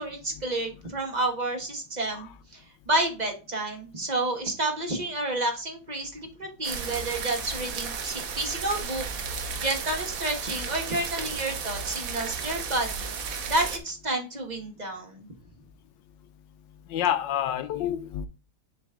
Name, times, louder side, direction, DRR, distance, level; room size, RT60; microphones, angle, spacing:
voice 1, 0.0-13.1 13.5-15.3, right 2 dB, 25° right, 1.1 m, -30 dB
sound 1, 6.6-13.8, right 6 dB, 55° right, 1.1 m, -34 dB
voice 2, 16.9-18.3, left 10 dB, 75° left, 1.2 m, -28 dB
7.3 x 4.1 x 3.5 m
omnidirectional pair, 2.1 m